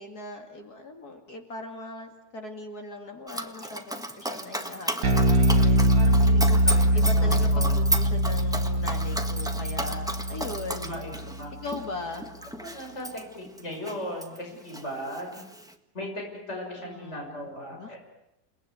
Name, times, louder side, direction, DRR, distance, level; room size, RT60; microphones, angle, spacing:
voice 1, 0.0-6.6 6.9-11.0 11.6-12.3 16.8-17.2 17.7-18.0, left 2 dB, 60° left, 4 dB, 3.0 m, -39 dB
Dog, 3.3-14.4 14.7-15.7, right 1 dB, ahead, 1.5 m, -34 dB
Bass guitar, 5.0-11.5, right 1 dB, 75° right, 2.0 m, -23 dB
voice 2, 6.6-7.7 10.8-11.5 12.6-13.1 13.4-15.4 15.9-18.0, equal, 40° left, 0 dB, 6.5 m, -37 dB
29.5 x 19.0 x 9.6 m, 0.87 s
omnidirectional pair, 1.8 m